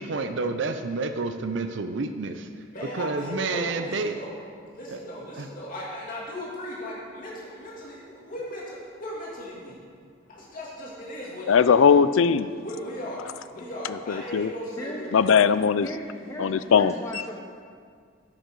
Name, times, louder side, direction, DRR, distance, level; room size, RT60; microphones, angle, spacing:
voice 1, 0.0-2.5 2.9-4.2 4.9-5.0 5.4-5.5, right 3 dB, 60° right, 8 dB, 0.5 m, -29 dB
voice 2, 2.7-4.3 4.7-9.8 10.3-11.8 12.6-15.3, left 1 dB, 45° left, -5 dB, 2.6 m, -37 dB
voice 3, 11.5-12.5 14.3-14.5 15.1-15.9 16.4-16.9, left 6 dB, 80° left, 14 dB, 0.4 m, -19 dB
voice 4, 15.8-17.4, equal, 15° left, 0 dB, 0.7 m, -37 dB
10.0 x 6.6 x 6.2 m, 2.1 s
head